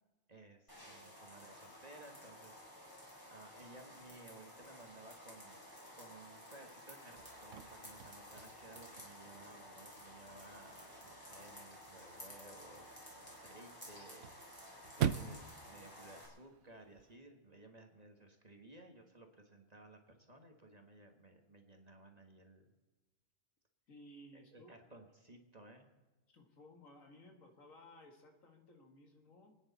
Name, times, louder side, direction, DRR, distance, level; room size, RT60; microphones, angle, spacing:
voice 1, 0.3-22.7 24.3-25.9, right 2 dB, 30° right, 3 dB, 1.6 m, -58 dB
sound 1, 0.7-16.3, equal, 15° left, 4.8 m, -54 dB
Chirp tweet / Car / Slam, 7.2-17.2, right 9 dB, 65° right, 1.0 m, -45 dB
voice 2, 23.9-24.7 26.3-29.6, left 1 dB, 75° left, 3 dB, 2.3 m, -58 dB
29.0 x 9.8 x 4.1 m, 1.2 s
omnidirectional pair, 1.4 m